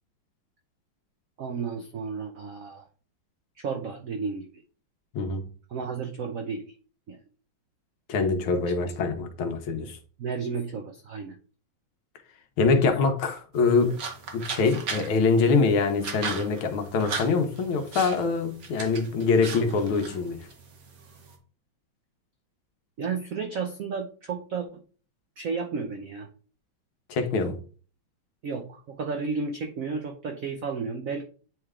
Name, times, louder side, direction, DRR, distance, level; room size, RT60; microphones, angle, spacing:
voice 1, 1.4-2.9 3.6-4.5 5.7-6.7 7.1-7.2 10.2-11.4 23.0-24.8 25.4-26.3 28.4-31.2, right 5 dB, 80° right, 0.7 m, -32 dB
voice 2, 8.1-10.0 12.6-14.0 14.3-20.5 27.1-27.6, left 4 dB, 80° left, 1.8 m, -24 dB
sound 1, 13.5-21.4, right 5 dB, 50° right, 1.4 m, -38 dB
8.9 x 3.3 x 3.6 m
omnidirectional pair, 2.3 m